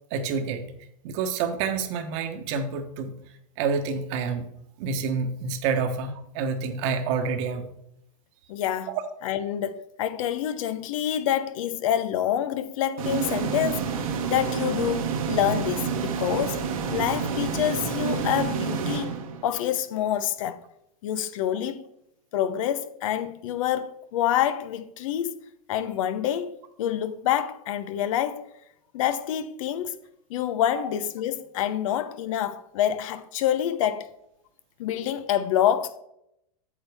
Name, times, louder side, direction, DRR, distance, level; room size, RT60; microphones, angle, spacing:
voice 1, 0.1-0.7 1.0-3.1 3.6-4.5 4.8-7.7 8.9-9.0 30.7-30.9, right 5 dB, 55° right, 1.3 m, -28 dB
voice 2, 8.5-9.0 9.2-16.6 16.9-19.1 19.4-20.6 21.0-21.8 22.3-25.4 25.7-26.5 26.8-28.5 28.9-30.0 30.3-34.1 34.8-36.0, left 10 dB, 65° left, 0.8 m, -27 dB
sound 1, 13.0-19.7, right 6 dB, 75° right, 1.4 m, -29 dB
8.5 x 7.3 x 3.5 m
hypercardioid pair, 115°, 18 cm